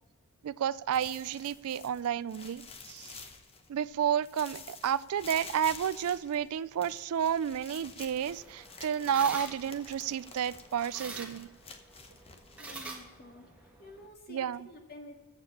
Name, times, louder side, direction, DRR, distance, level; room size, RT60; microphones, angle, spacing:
voice 1, 0.4-2.6 2.9-3.1 3.7-11.5 14.3-14.7, right 9 dB, 70° right, 19 dB, 0.3 m, -31 dB
sound 1, 0.9-3.9 4.2-13.2, left 4 dB, 25° left, 0.9 m, -49 dB
sound 2, 8.0-14.1, right 2 dB, 5° right, 1.6 m, -47 dB
voice 2, 12.5-15.2, left 1 dB, 45° left, 2 dB, 1.9 m, -50 dB
8.1 x 7.0 x 8.5 m, 1.2 s
head